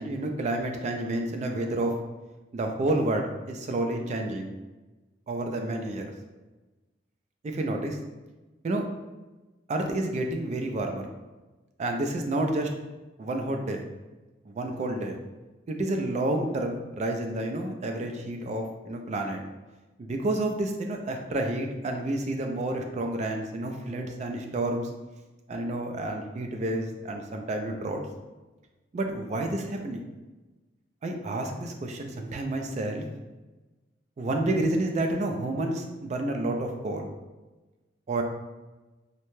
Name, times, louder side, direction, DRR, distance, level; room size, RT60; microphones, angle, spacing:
voice 1, 0.0-1.9 2.5-4.5 5.3-6.1 7.4-8.0 8.6-8.8 9.7-11.1 11.8-12.7 13.2-13.8 14.5-15.2 15.7-19.4 20.0-24.9 25.5-28.0 28.9-30.0 31.0-33.1 34.2-37.1 38.1-38.2, right 1 dB, 40° right, 4 dB, 0.3 m, -29 dB
2.7 x 2.1 x 3.0 m, 1.2 s
head